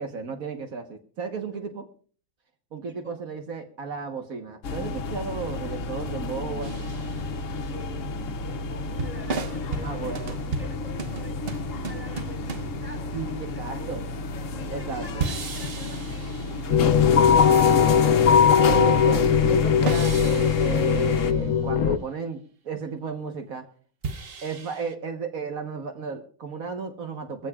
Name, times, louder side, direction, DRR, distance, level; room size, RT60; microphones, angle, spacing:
voice 1, 0.0-1.9 2.7-6.9 9.8-10.3 13.1-14.0 14.7-15.2 18.6-22.4 22.7-23.7 24.4-27.5, right 5 dB, 75° right, 5 dB, 1.7 m, -33 dB
voice 2, 2.9-3.2 7.7-14.1 14.5-18.0, left 1 dB, 5° right, 3 dB, 6.4 m, -45 dB
sound 1, 4.6-21.3, left 5 dB, 65° left, 1.2 m, -28 dB
sound 2, 6.6-7.6 9.0-13.9 15.2-17.0 17.5-18.4 19.9-21.6 24.0-24.9, right 4 dB, 45° right, 1.2 m, -35 dB
sound 3, 16.7-22.0, left 8 dB, 85° left, 1.4 m, -21 dB
23.0 x 15.5 x 2.4 m, 0.42 s
omnidirectional pair, 1.5 m